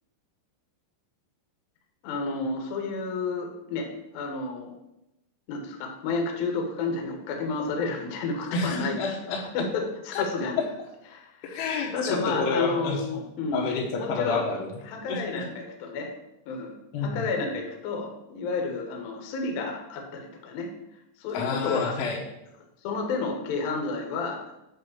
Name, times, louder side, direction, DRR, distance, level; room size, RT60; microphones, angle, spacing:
voice 1, 2.0-4.7 5.5-9.0 9.5-10.6 11.1-11.6 11.9-13.6 14.0-14.5 14.8-16.1 16.5-16.7 17.0-20.7 21.2-21.9 22.8-24.4, left 4 dB, 65° left, 2 dB, 2.5 m, -31 dB
voice 2, 8.5-9.5 10.1-10.3 11.4-13.0 13.5-14.8 15.1-15.4 16.9-17.3 21.3-22.2, left 4 dB, 85° left, 0 dB, 4.0 m, -29 dB
9.6 x 3.4 x 6.7 m, 0.89 s
omnidirectional pair, 5.8 m